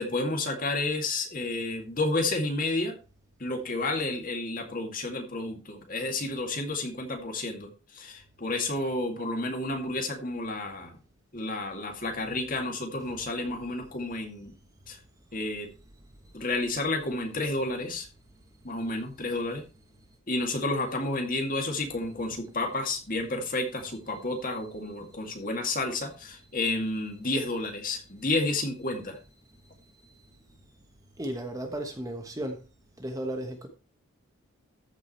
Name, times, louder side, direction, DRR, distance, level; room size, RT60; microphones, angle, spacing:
voice 1, 0.0-2.9 3.4-11.0 11.3-14.5 14.9-15.0 15.3-15.7 16.3-18.1 18.6-19.6 20.3-29.2, left 2 dB, 40° left, 2.2 m, -31 dB
voice 2, 31.2-32.6 33.0-33.7, right 1 dB, 15° right, 1.1 m, -34 dB
14.0 x 5.0 x 4.3 m
head